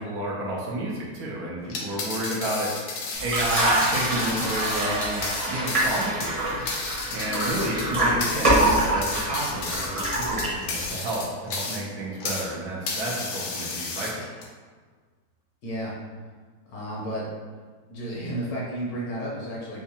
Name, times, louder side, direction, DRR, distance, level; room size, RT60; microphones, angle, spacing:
voice 1, 0.0-6.6 7.1-14.2, right 1 dB, 70° right, -5 dB, 1.2 m, -31 dB
sound 1, 1.6-12.5 12.9-14.4, left 4 dB, 85° left, 1.2 m, -33 dB
sound 2, 3.1-10.9, right 1 dB, 25° right, 0.8 m, -25 dB
voice 2, 15.6-15.9 16.7-17.2 17.9-19.8, right 1 dB, 65° left, -5 dB, 1.2 m, -32 dB
4.6 x 2.2 x 2.8 m, 1.5 s
omnidirectional pair, 1.8 m